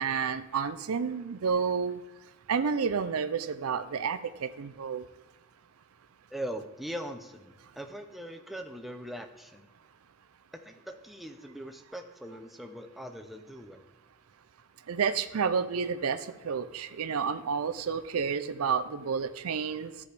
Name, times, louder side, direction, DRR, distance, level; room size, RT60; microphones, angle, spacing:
voice 1, 0.0-2.0 2.5-5.0 14.9-19.9, right 6 dB, 80° right, 11 dB, 0.5 m, -30 dB
voice 2, 6.3-9.7 10.5-13.9, equal, ahead, 6 dB, 0.5 m, -41 dB
13.5 x 4.8 x 3.4 m, 1.2 s
head